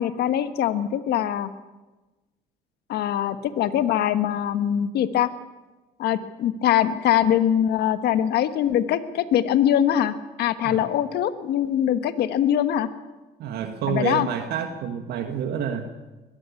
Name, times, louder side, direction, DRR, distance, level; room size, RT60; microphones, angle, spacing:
voice 1, 0.0-1.5 2.9-5.3 6.0-12.9 13.9-14.3, left 10 dB, 75° left, 11 dB, 1.4 m, -22 dB
voice 2, 13.4-15.9, right 8 dB, 75° right, 6 dB, 1.7 m, -28 dB
21.5 x 14.5 x 9.6 m, 1.1 s
cardioid pair, 110°, 17 cm